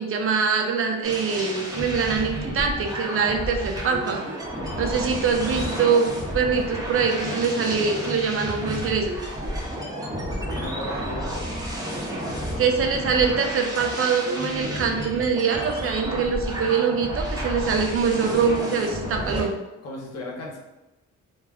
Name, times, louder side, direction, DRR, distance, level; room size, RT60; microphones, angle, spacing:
voice 1, 0.0-4.2 4.8-9.1 12.6-19.5, right 5 dB, 45° right, 4 dB, 0.5 m, -23 dB
sound 1, 1.0-19.4, equal, 10° right, 0.8 m, -31 dB
voice 2, 10.4-11.4 19.3-19.5 19.8-20.6, left 1 dB, 55° left, -1 dB, 0.8 m, -35 dB
2.2 x 2.2 x 3.4 m, 1.0 s
cardioid pair, 90°, 30 cm